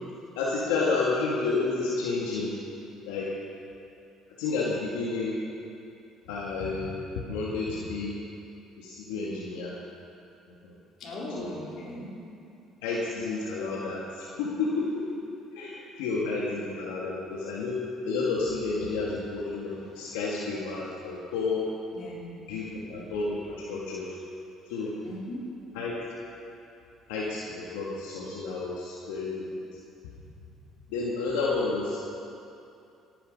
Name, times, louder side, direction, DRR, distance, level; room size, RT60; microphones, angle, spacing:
voice 1, 0.3-2.5 3.0-3.3 4.4-5.3 6.3-7.0 7.3-8.2 8.8-9.7 10.6-10.7 11.3-11.5 12.8-15.0 15.5-17.8 18.1-21.7 22.5-24.2 24.7-25.0 25.7-25.9 27.1-29.6 30.9-32.1, left 3 dB, 90° left, -5 dB, 1.8 m, -30 dB
voice 2, 11.0-12.1 21.9-22.3 25.0-25.5, left 1 dB, 60° left, -4 dB, 4.0 m, -38 dB
17.5 x 10.0 x 5.3 m, 2.6 s
supercardioid pair, 75°, 0 cm